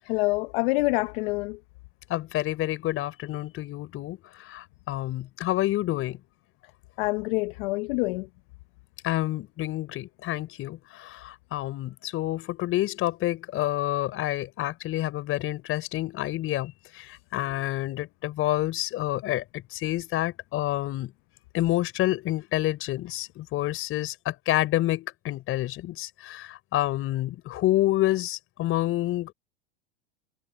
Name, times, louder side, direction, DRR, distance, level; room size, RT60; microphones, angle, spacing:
voice 1, 0.1-1.6 7.0-8.3, left 25 dB, 65° left, 1.0 m, -26 dB
voice 2, 2.1-6.2 9.0-21.1 21.5-29.3, left 15 dB, 45° left, 4.8 m, -28 dB
supercardioid pair, 115°, 31 cm